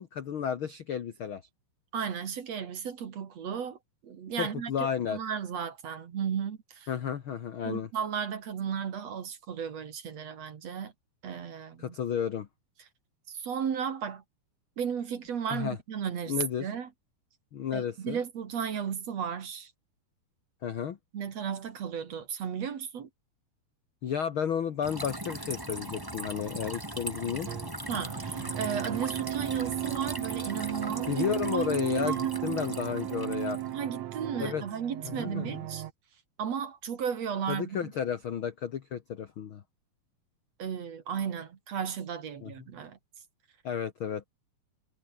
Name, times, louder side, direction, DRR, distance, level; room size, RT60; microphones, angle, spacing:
voice 1, 0.0-1.4 4.4-5.2 6.9-7.9 11.8-12.5 15.5-15.8 16.3-16.7 17.5-18.2 20.6-21.0 24.0-27.5 31.1-33.6 34.4-34.6 35.0-35.7 37.5-39.6 42.4-42.5 43.6-44.3, left 8 dB, 75° left, 1.1 m, -32 dB
voice 2, 1.9-6.9 7.6-10.9 11.2-11.9 13.3-14.2 14.8-16.9 17.7-19.7 21.1-23.1 27.9-31.2 31.5-31.7 32.0-32.4 33.7-35.9 36.4-37.9 40.6-43.0, right 7 dB, 50° right, 2.7 m, -34 dB
sound 1, 24.8-33.7, right 1 dB, 5° right, 4.0 m, -39 dB
sound 2, 27.5-35.9, right 13 dB, 70° right, 1.7 m, -35 dB
omnidirectional pair, 4.4 m